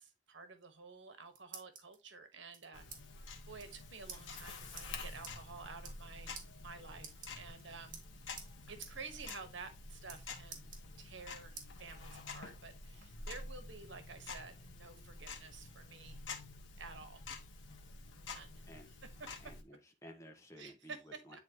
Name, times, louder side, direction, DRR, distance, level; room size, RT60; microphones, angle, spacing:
voice 1, 0.0-2.8 3.5-6.3 6.6-8.0 8.7-10.7 11.0-16.2 16.8-17.2 18.2-18.6 20.6-21.0 21.3-21.4, right 4 dB, 85° right, 1.4 m, -51 dB
sound 1, 0.9-2.0 2.5-3.0 3.3-3.4 3.6-3.8 4.1-4.2 4.8-4.9 5.2-5.4 5.7-6.1 6.4-6.5 7.0-7.6 7.9-8.5 8.8-9.0 9.3-9.4 9.7-10.2 10.5-11.2 11.6-11.7 12.2-13.1, right 6 dB, 45° right, 1.8 m, -50 dB
Tick-tock, 2.7-19.6, left 3 dB, 90° left, 1.3 m, -49 dB
voice 2, 19.4-21.4, equal, 15° left, 1.1 m, -55 dB
9.6 x 4.2 x 2.9 m
head